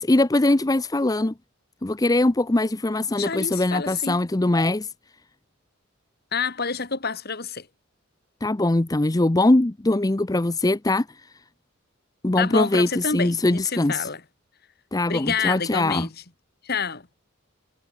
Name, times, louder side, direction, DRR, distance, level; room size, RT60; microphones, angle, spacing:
voice 1, 0.0-1.3 1.8-4.9 8.4-11.3 12.2-14.1 14.9-16.1, left 2 dB, 15° left, 0.6 m, -22 dB
voice 2, 3.2-4.2 6.3-7.7 12.4-14.2 15.1-16.1 16.6-17.1, left 5 dB, 50° left, 2.2 m, -28 dB
head